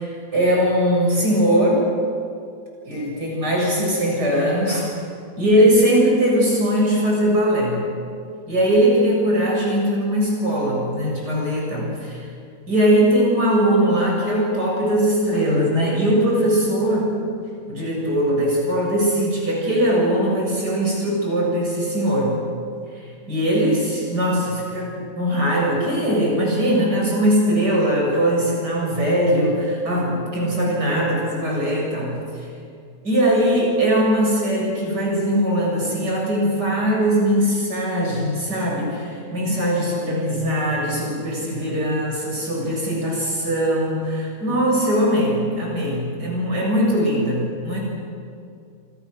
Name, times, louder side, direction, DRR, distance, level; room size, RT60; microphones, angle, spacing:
voice 1, 0.0-1.9 2.8-4.9 5.4-7.8 8.5-12.2 12.7-17.2 17.7-22.4 23.3-32.2 33.0-47.8, equal, 85° right, -2 dB, 8.0 m, -20 dB
28.0 x 25.5 x 6.5 m, 2.4 s
omnidirectional pair, 1.7 m